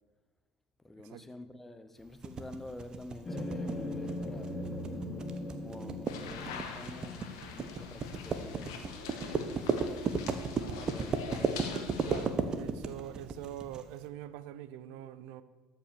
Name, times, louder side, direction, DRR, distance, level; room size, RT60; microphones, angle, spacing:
voice 1, 0.8-4.6 5.6-7.2 7.5-10.1 10.4-11.7, left 2 dB, 10° left, 0.8 m, -49 dB
sound 1, 2.2-13.8, right 5 dB, 35° right, 1.0 m, -34 dB
sound 2, 3.2-7.7, left 1 dB, 25° left, 1.7 m, -39 dB
sound 3, 6.1-12.3, left 6 dB, 85° left, 1.4 m, -44 dB
voice 2, 12.1-15.4, right 12 dB, 75° right, 0.6 m, -44 dB
13.0 x 5.8 x 6.8 m
supercardioid pair, 90°, 2 cm